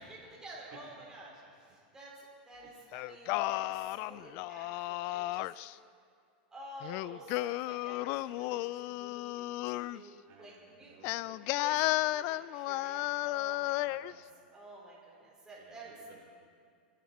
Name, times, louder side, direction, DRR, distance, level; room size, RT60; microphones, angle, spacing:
voice 1, 0.0-5.8 6.5-11.0 11.3-14.2 14.5-15.9, right 1 dB, 10° right, -5 dB, 4.8 m, -51 dB
Singing, 2.9-5.7 6.8-10.0 11.0-14.1, left 17 dB, 45° left, 0.3 m, -34 dB
voice 2, 7.7-8.4 10.2-12.4 13.8-14.3 15.6-16.3, right 3 dB, 45° right, -2 dB, 3.8 m, -58 dB
27.5 x 10.0 x 4.2 m, 2.2 s
hypercardioid pair, 125°, 5 cm